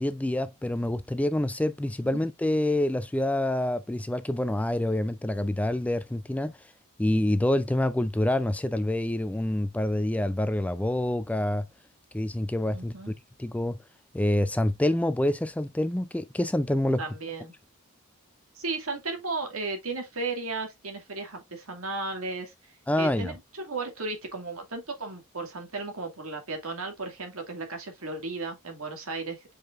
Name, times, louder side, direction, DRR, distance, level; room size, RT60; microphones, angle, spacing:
voice 1, 0.0-6.5 7.0-11.7 12.1-13.1 13.4-13.8 14.1-17.0 22.9-23.3, left 1 dB, 5° left, 0.3 m, -27 dB
voice 2, 12.7-13.1 17.0-17.5 18.5-29.4, right 3 dB, 70° right, 2.2 m, -35 dB
7.7 x 5.0 x 2.4 m
head